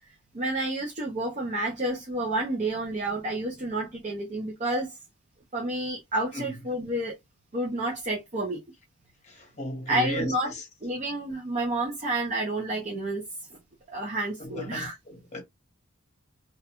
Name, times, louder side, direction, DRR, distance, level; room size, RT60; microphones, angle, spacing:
voice 1, 0.3-5.0 5.5-7.2 7.5-8.6 9.9-10.5 10.8-13.2 13.9-15.0, right 2 dB, 35° right, 0.6 m, -30 dB
voice 2, 9.3-10.6 14.4-15.4, left 1 dB, 35° left, 0.9 m, -35 dB
2.3 x 2.2 x 2.8 m
head